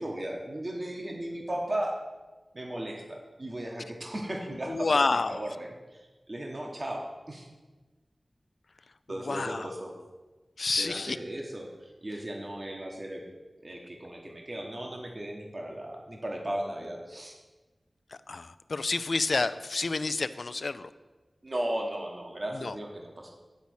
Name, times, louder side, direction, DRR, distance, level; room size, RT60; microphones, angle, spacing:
voice 1, 0.0-2.0 2.5-7.5 9.1-9.9 10.8-13.2 13.6-17.3 21.4-23.3, right 1 dB, 45° right, 0 dB, 1.2 m, -36 dB
voice 2, 4.7-5.5 9.2-9.7 10.6-11.2 18.3-20.9 22.5-22.8, left 3 dB, 75° left, 13 dB, 0.3 m, -29 dB
9.7 x 4.1 x 6.3 m, 1.2 s
wide cardioid pair, 55°, 0 cm